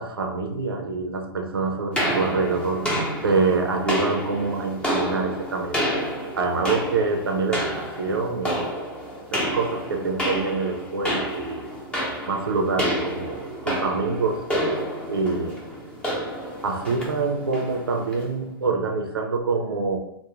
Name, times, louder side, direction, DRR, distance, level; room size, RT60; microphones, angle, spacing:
voice 1, 0.0-5.8 6.4-8.8 9.3-11.7 12.3-14.5 15.1-15.6 16.6-20.0, right 4 dB, 90° right, 3 dB, 0.5 m, -26 dB
sound 1, 1.9-18.3, equal, 10° left, 0.7 m, -29 dB
2.4 x 2.1 x 2.9 m, 0.78 s
hypercardioid pair, 125°, 12 cm